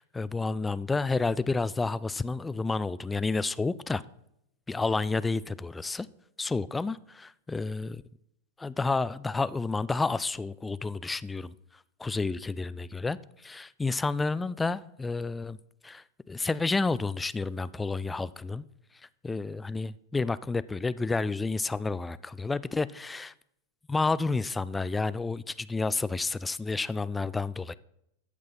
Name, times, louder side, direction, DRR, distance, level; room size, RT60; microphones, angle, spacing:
voice 1, 0.2-4.0 4.7-6.1 6.4-7.0 7.5-8.0 8.6-11.5 12.0-13.2 13.4-15.6 15.8-18.7 19.2-23.3 23.9-27.7, left 3 dB, 10° left, 17 dB, 0.4 m, -30 dB
14.0 x 6.0 x 5.8 m, 0.78 s
figure-of-eight pair, 90°, 0 cm